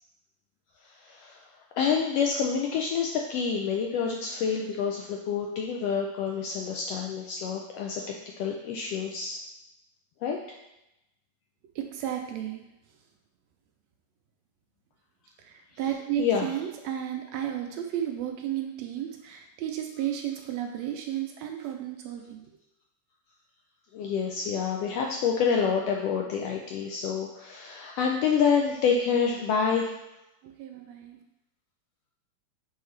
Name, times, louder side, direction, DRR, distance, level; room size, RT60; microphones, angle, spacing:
voice 1, 1.0-1.4 1.8-8.0 8.4-9.4 10.2-10.4 16.2-16.5 23.9-29.9, left 6 dB, 80° left, 0 dB, 1.4 m, -27 dB
voice 2, 11.7-12.6 15.4-22.4 30.4-31.2, right 11 dB, 75° right, 3 dB, 1.7 m, -33 dB
6.5 x 4.6 x 3.2 m, 0.89 s
omnidirectional pair, 3.3 m